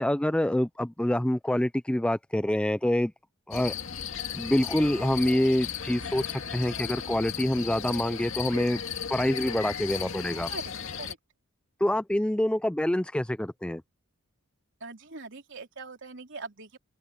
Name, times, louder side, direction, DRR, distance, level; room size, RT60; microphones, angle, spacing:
voice 1, 0.0-3.1 3.5-3.7 4.3-8.8 9.1-10.5 11.8-13.8, left 1 dB, 5° left, 0.4 m, -26 dB
sound 1, 3.5-11.1, left 7 dB, 65° left, 2.1 m, -36 dB
voice 2, 14.8-16.8, right 3 dB, 55° right, 3.6 m, -42 dB
open air
head